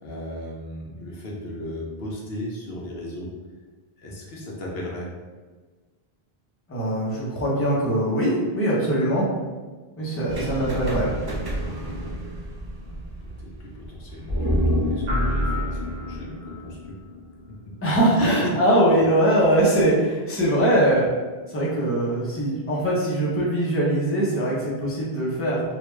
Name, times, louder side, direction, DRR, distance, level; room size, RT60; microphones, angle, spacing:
voice 1, 0.0-3.3 4.0-5.1 12.0-12.1 13.4-16.9 18.1-18.5, left 1 dB, 75° left, -3 dB, 0.9 m, -35 dB
voice 2, 6.7-9.3 10.0-11.1 17.8-21.1 21.5-25.6, right 1 dB, 15° left, -6 dB, 0.7 m, -22 dB
sound 1, 10.3-16.2, right 1 dB, 40° right, 0.3 m, -34 dB
sound 2, 14.3-17.7 18.0-18.1, equal, 25° right, 1.3 m, -27 dB
sound 3, 15.1-16.6, equal, 70° right, 1.1 m, -27 dB
3.4 x 2.4 x 3.1 m, 1.3 s
omnidirectional pair, 1.0 m